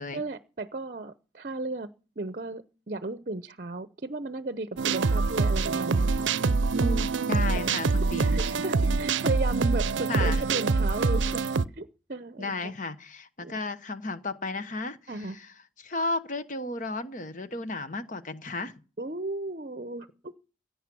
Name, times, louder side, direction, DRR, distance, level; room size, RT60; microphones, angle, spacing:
voice 1, 0.1-1.9 2.2-6.1 6.7-7.1 7.6-7.8 8.2-11.4 11.8-12.7 13.4-13.5 15.1-15.4 19.0-20.3, right 2 dB, 45° right, 0.7 m, -35 dB
sound 1, 4.8-11.7, right 4 dB, 80° right, 0.6 m, -25 dB
voice 2, 6.4-8.4 10.1-10.4 12.4-15.5 15.8-18.7, left 2 dB, 40° left, 1.0 m, -34 dB
16.5 x 9.6 x 6.1 m
head